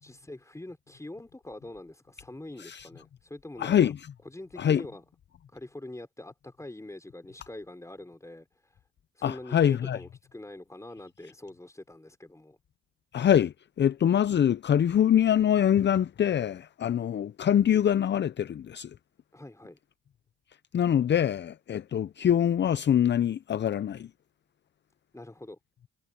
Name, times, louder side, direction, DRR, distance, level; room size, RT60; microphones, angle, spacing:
voice 1, 0.0-3.9 4.2-5.0 5.5-8.5 9.2-12.6 19.3-19.8 25.1-25.6, left 1 dB, 10° left, 4.2 m, -44 dB
voice 2, 3.6-4.0 4.6-4.8 9.2-10.0 13.1-18.9 20.7-24.1, left 9 dB, 40° left, 0.5 m, -24 dB
cardioid pair, 90°, 30 cm